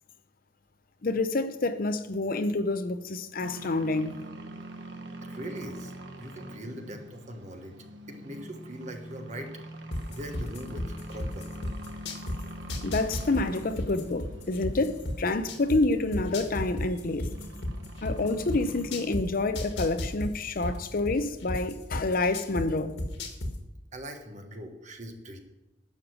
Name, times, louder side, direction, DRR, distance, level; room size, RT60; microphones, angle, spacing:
voice 1, 1.0-4.2 12.8-17.3 18.0-23.0, left 2 dB, 50° left, 0.7 m, -28 dB
sound 1, 3.4-19.2, right 1 dB, 75° right, 1.2 m, -44 dB
voice 2, 5.2-7.7 8.1-9.5 10.1-11.5 23.9-25.4, equal, 40° right, 1.4 m, -41 dB
sound 2, 9.9-12.4 12.7-15.8 16.1-19.2 19.5-22.6 23.0-23.5, left 1 dB, 70° left, 1.7 m, -32 dB
11.0 x 6.7 x 6.2 m
head